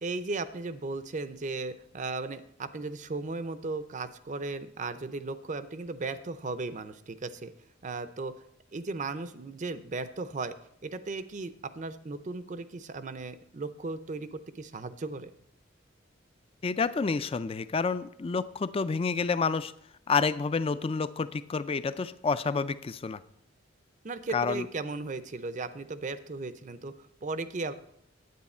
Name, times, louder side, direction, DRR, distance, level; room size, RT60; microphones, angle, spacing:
voice 1, 0.0-7.5 7.8-8.3 8.7-10.5 10.8-15.3 24.0-27.7, right 3 dB, 40° right, 13 dB, 0.5 m, -36 dB
voice 2, 16.6-19.7 20.1-23.2 24.3-24.7, left 4 dB, 30° left, 14 dB, 0.3 m, -29 dB
9.6 x 9.0 x 4.3 m, 0.73 s
head